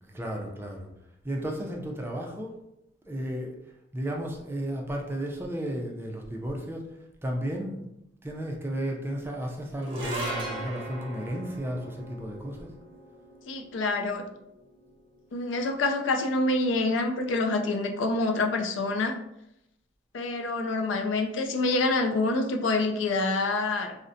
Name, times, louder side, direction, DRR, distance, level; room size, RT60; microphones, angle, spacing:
voice 1, 0.0-0.9 1.2-2.6 3.1-3.5 3.9-6.9 7.2-7.9 8.2-12.7, equal, 10° right, 0 dB, 0.4 m, -33 dB
sound 1, 9.8-16.3, right 1 dB, 30° right, 0.9 m, -39 dB
voice 2, 13.5-14.2 15.3-19.1 20.1-24.0, left 2 dB, 85° left, 4 dB, 0.4 m, -26 dB
3.7 x 2.1 x 2.6 m, 0.83 s
head